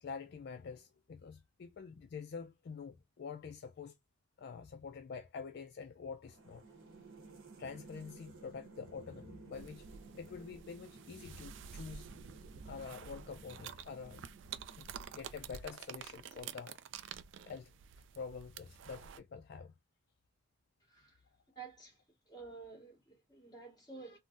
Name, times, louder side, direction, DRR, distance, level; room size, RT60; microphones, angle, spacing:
voice 1, 0.0-3.9 4.4-6.6 7.6-9.9 10.1-12.1 12.7-14.3 14.8-14.9 15.1-16.8 17.5-17.7 18.2-19.7, left 5 dB, 50° left, 0.3 m, -47 dB
sound 1, 6.2-15.6, right 3 dB, 90° right, 0.9 m, -56 dB
sound 2, 9.5-19.2, right 7 dB, 65° right, 0.3 m, -50 dB
voice 2, 20.9-21.2 21.6-22.0 22.3-24.2, right 4 dB, 20° left, 1.7 m, -51 dB
3.6 x 2.1 x 2.5 m
head